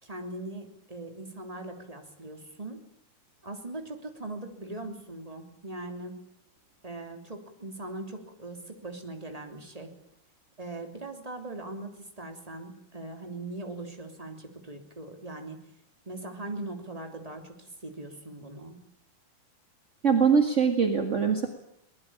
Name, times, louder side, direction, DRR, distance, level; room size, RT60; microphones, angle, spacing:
voice 1, 0.0-2.8 3.4-6.1 6.8-9.9 10.6-15.6 16.0-18.8, right 2 dB, 10° right, 5 dB, 2.7 m, -40 dB
voice 2, 20.0-21.5, right 6 dB, 35° right, 5 dB, 1.2 m, -22 dB
23.5 x 19.5 x 8.8 m, 0.74 s
omnidirectional pair, 4.3 m